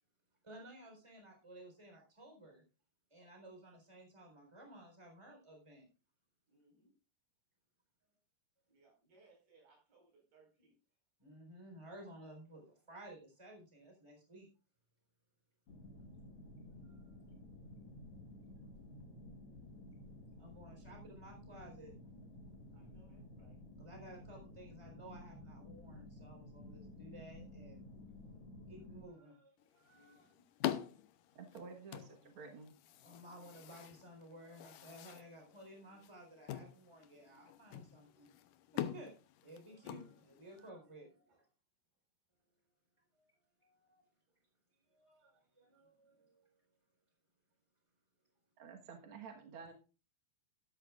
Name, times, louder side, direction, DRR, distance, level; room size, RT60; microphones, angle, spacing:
voice 1, 0.4-2.6 3.1-5.9 11.2-14.5 16.8-17.1 20.4-21.9 23.8-27.8 28.7-30.3 33.0-38.3 38.7-39.1 39.4-41.1 43.1-43.3 43.6-44.0 44.9-46.5, right 1 dB, 10° right, 3.8 m, -55 dB
voice 2, 6.5-6.9 8.7-11.0 18.7-19.0 22.7-23.6 28.2-28.5 29.9-30.6 33.0-33.4 40.7-41.5 44.3-44.4 45.6-46.3, right 2 dB, 75° right, 6.6 m, -70 dB
sound 1, 15.7-29.0, left 1 dB, 50° left, 2.4 m, -54 dB
sound 2, 29.6-40.7, left 11 dB, 80° left, 2.3 m, -46 dB
voice 3, 31.4-32.7 48.6-49.7, right 5 dB, 50° right, 1.8 m, -51 dB
13.0 x 12.5 x 2.5 m
omnidirectional pair, 3.8 m